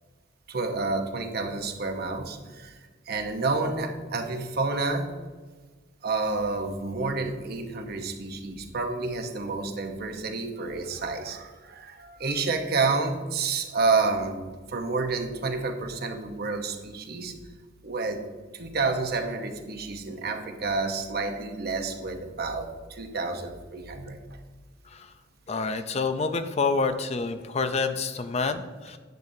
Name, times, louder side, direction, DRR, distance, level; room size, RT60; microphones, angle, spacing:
voice 1, 0.5-2.8 3.1-5.1 6.0-14.4 14.7-17.3 17.8-18.2 18.5-24.2, right 3 dB, 55° right, 5 dB, 0.9 m, -29 dB
voice 2, 25.5-29.0, left 4 dB, 35° left, 9 dB, 0.4 m, -28 dB
10.5 x 8.3 x 2.7 m, 1.4 s
head